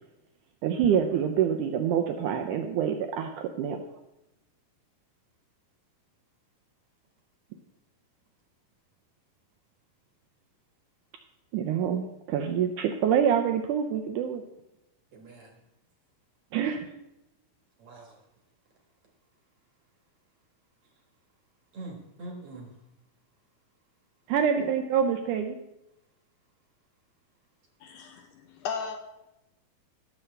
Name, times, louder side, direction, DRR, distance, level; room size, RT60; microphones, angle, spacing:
voice 1, 0.6-3.8 11.5-14.4 16.5-16.8 24.3-25.6, right 8 dB, 80° right, 5 dB, 1.9 m, -26 dB
voice 2, 15.1-15.6 16.6-16.7 17.8-18.2 20.8-21.0 21.7-22.8 24.6-24.7, right 2 dB, 55° right, 1 dB, 1.9 m, -44 dB
voice 3, 27.8-29.0, left 6 dB, 75° left, 5 dB, 2.0 m, -36 dB
17.0 x 7.1 x 3.3 m, 0.91 s
omnidirectional pair, 4.1 m